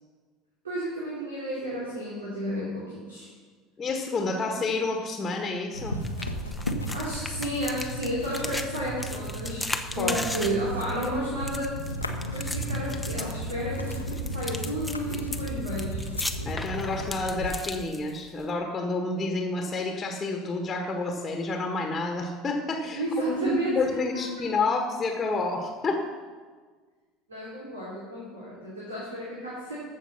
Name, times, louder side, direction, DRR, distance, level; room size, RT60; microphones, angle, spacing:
voice 1, 0.6-3.3 6.7-11.7 12.3-16.1 22.9-23.8 27.3-29.8, right 1 dB, 75° right, -6 dB, 2.9 m, -32 dB
voice 2, 3.8-6.0 10.0-10.2 16.4-23.0 23.3-26.0, left 3 dB, 25° left, 3 dB, 1.5 m, -29 dB
sound 1, 5.7-17.5, equal, 85° left, 0.9 m, -34 dB
sound 2, 6.0-18.5, left 2 dB, 5° left, 0.9 m, -37 dB
15.0 x 6.6 x 5.9 m, 1.5 s
figure-of-eight pair, 70°, 0 cm